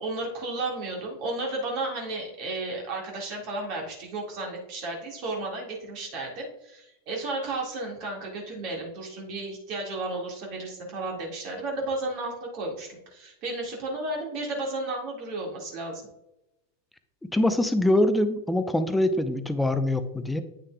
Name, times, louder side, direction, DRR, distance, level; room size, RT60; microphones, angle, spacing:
voice 1, 0.0-16.0, right 2 dB, 40° right, -1 dB, 1.9 m, -33 dB
voice 2, 17.3-20.4, left 1 dB, 5° left, 10 dB, 0.6 m, -24 dB
9.2 x 6.4 x 2.3 m, 0.87 s
figure-of-eight pair, 90°, 0 cm